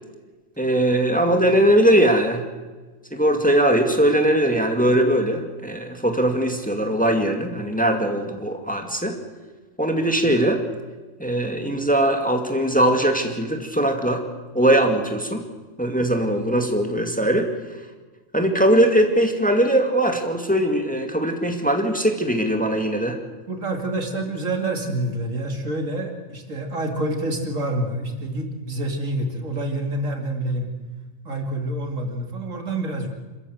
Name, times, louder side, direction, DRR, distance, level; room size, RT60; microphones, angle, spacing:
voice 1, 0.6-2.4 3.1-9.2 9.8-10.6 11.2-14.2 14.5-15.4 15.8-17.5 18.3-23.2, right 1 dB, 5° left, 4 dB, 2.1 m, -20 dB
voice 2, 23.5-30.7 31.2-33.1, right 1 dB, 80° right, 3 dB, 2.9 m, -27 dB
27.0 x 13.5 x 7.9 m, 1.3 s
omnidirectional pair, 1.3 m